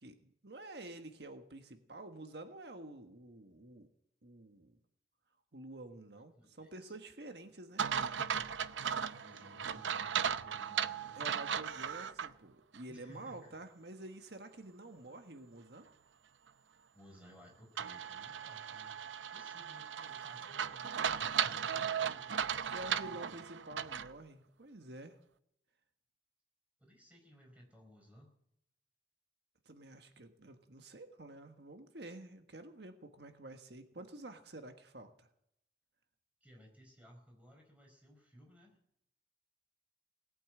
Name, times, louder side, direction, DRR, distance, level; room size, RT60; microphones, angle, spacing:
voice 1, 0.0-3.9 4.2-4.8 5.5-7.8 11.1-15.9 22.7-25.2 29.6-35.3, right 2 dB, 65° right, 7 dB, 1.4 m, -49 dB
voice 2, 6.2-6.9 8.0-11.2 12.9-13.6 16.9-19.0 19.3-23.3 26.8-28.3 36.4-38.8, equal, 10° right, 1 dB, 4.7 m, -59 dB
sound 1, 7.8-12.3 12.7-12.8 17.8-24.1, right 8 dB, 90° right, 0.6 m, -36 dB
18.5 x 8.7 x 8.8 m, 0.74 s
head